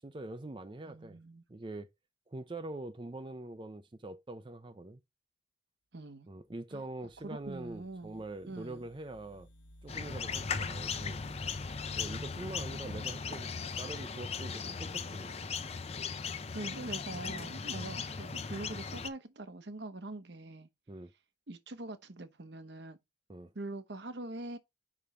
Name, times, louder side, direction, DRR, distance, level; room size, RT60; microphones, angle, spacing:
voice 1, 0.0-1.2 1.5-1.9 2.3-5.0 6.3-9.5 9.8-11.2 12.0-13.5 13.8-15.4 17.7-17.9 20.9-21.1 23.3-23.5, right 2 dB, 25° right, 0.5 m, -44 dB
voice 2, 0.8-1.4 5.9-6.3 6.7-6.8 7.2-8.8 12.9-13.2 16.5-20.7 21.5-23.0 23.5-24.6, right 2 dB, 65° right, 1.0 m, -43 dB
sound 1, 6.9-14.5, equal, 85° left, 1.0 m, -55 dB
sound 2, 9.9-19.1, left 5 dB, 35° left, 0.5 m, -38 dB
5.5 x 5.0 x 5.6 m
head